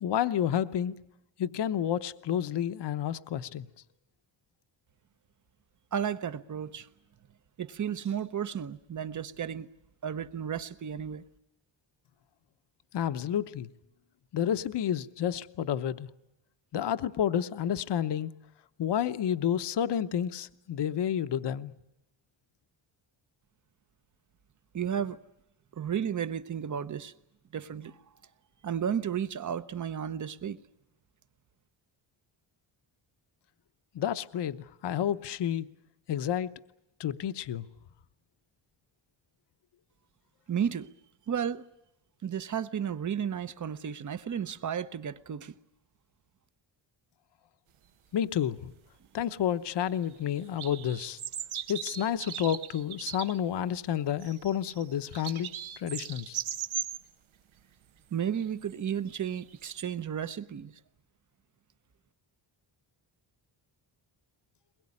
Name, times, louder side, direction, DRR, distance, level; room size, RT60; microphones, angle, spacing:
voice 1, 0.0-0.9 1.4-3.7 12.9-13.7 14.3-16.1 16.7-18.3 18.8-21.7 33.9-35.7 36.1-36.5 37.0-37.6 48.1-48.7 49.1-51.2 51.7-55.5 55.8-56.4, left 9 dB, 60° left, 0.9 m, -30 dB
voice 2, 5.9-6.9 7.6-9.7 10.0-11.2 24.7-25.2 25.8-27.1 27.5-28.0 28.6-30.6 40.5-40.9 41.3-41.6 42.2-45.5 58.1-60.7, right 8 dB, 40° right, 0.9 m, -33 dB
sound 1, 49.8-50.1 50.4-53.4 54.1-57.0 58.3-58.7 59.1-59.8, right 10 dB, 80° right, 1.2 m, -38 dB
22.5 x 21.0 x 9.7 m
wide cardioid pair, 175°, 47 cm